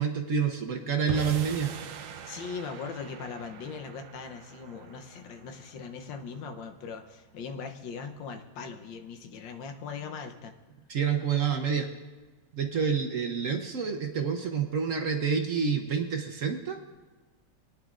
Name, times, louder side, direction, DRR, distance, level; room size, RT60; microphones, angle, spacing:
voice 1, 0.0-1.7 10.9-11.9 12.5-16.8, right 6 dB, 55° right, 4 dB, 0.9 m, -28 dB
sound 1, 1.1-7.5, right 8 dB, 80° right, 0.7 m, -43 dB
voice 2, 2.2-10.5, left 5 dB, 80° left, 5 dB, 1.6 m, -40 dB
20.5 x 10.5 x 2.5 m, 1.3 s
omnidirectional pair, 2.0 m